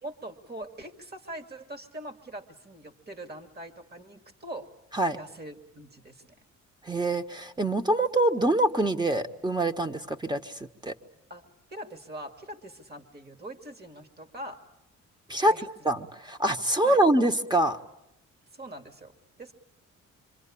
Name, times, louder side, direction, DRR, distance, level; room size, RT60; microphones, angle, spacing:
voice 1, 0.0-4.7 5.1-6.3 11.3-14.6 15.4-15.7 16.8-17.0 18.5-19.5, right 1 dB, 30° right, 7 dB, 2.2 m, -42 dB
voice 2, 6.8-10.9 15.3-15.5 15.8-17.8, right 1 dB, 15° right, 8 dB, 1.4 m, -25 dB
26.5 x 25.5 x 8.6 m, 0.87 s
cardioid pair, 90°, 30 cm